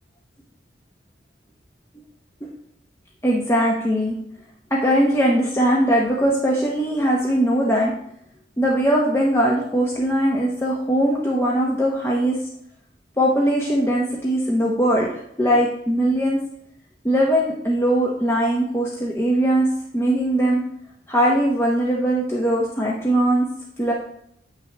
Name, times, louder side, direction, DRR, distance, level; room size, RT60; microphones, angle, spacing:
voice 1, 3.2-4.2 4.8-7.9 8.6-12.4 13.2-16.4 17.0-19.7 19.9-20.6 21.1-23.5 23.8-23.9, right 1 dB, 15° left, -3 dB, 0.8 m, -20 dB
8.3 x 6.1 x 3.3 m, 0.71 s
head